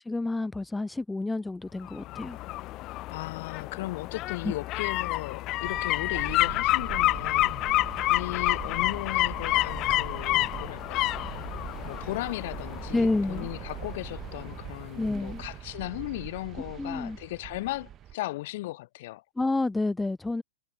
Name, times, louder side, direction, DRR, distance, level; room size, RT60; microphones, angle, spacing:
voice 1, 0.1-2.4 4.4-4.5 12.9-13.5 15.0-15.4 16.8-17.2 19.4-20.4, left 2 dB, 10° left, 0.8 m, -29 dB
sound 1, 1.8-14.7 15.0-15.1, left 17 dB, 40° left, 0.5 m, -29 dB
voice 2, 3.1-7.6 8.1-11.1 11.8-19.2, left 18 dB, 55° left, 1.1 m, -36 dB
sound 2, 5.6-18.1, right 11 dB, 30° right, 0.6 m, -42 dB
figure-of-eight pair, 100°, 0 cm